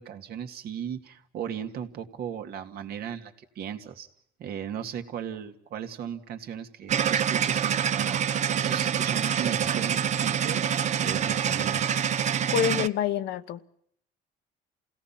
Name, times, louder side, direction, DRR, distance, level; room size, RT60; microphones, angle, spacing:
voice 1, 0.0-4.1 4.4-10.6 11.0-11.9, right 8 dB, 65° right, 2.2 m, -37 dB
sound 1, 6.9-12.9, right 8 dB, 45° right, 0.8 m, -26 dB
voice 2, 12.5-13.7, left 10 dB, 80° left, 1.2 m, -27 dB
28.5 x 17.5 x 5.8 m
cardioid pair, 110°, 17 cm